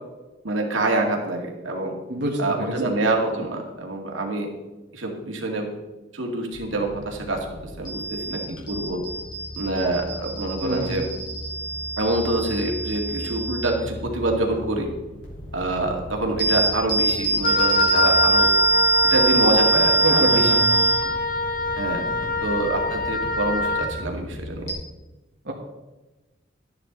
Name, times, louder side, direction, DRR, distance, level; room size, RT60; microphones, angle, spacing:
voice 1, 0.4-1.9 2.4-4.5 4.9-5.7 6.1-7.5 7.8-9.0 9.5-11.1 12.0-14.9 15.5-18.5 19.1-20.6 21.0-21.1 21.8-22.1 22.4-24.7, right 2 dB, 90° right, 1 dB, 2.2 m, -26 dB
voice 2, 2.1-2.7 10.6-10.9 20.0-20.8 22.0-22.3 25.4-25.5, right 1 dB, 60° right, -2 dB, 1.7 m, -26 dB
sound 1, 6.5-24.7, right 2 dB, 85° left, 4.2 m, -25 dB
Wind instrument woodwind instrument, 17.4-24.0, left 2 dB, 45° left, 1.5 m, -24 dB
12.0 x 10.5 x 4.0 m, 1.1 s
head